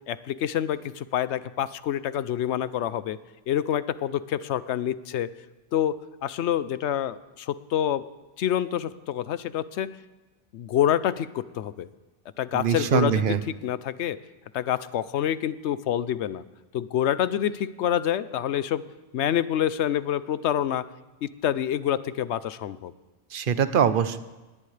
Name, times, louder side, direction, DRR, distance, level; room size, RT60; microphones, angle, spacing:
voice 1, 0.1-3.2 3.5-5.3 5.7-8.1 8.4-9.9 10.5-11.9 12.4-14.2 14.5-16.4 16.7-18.8 19.1-20.9 21.2-22.9, left 10 dB, 80° left, 15 dB, 0.9 m, -27 dB
voice 2, 12.5-13.4 23.3-24.2, right 7 dB, 55° right, 12 dB, 0.9 m, -23 dB
20.0 x 17.5 x 3.3 m, 1.2 s
omnidirectional pair, 1.2 m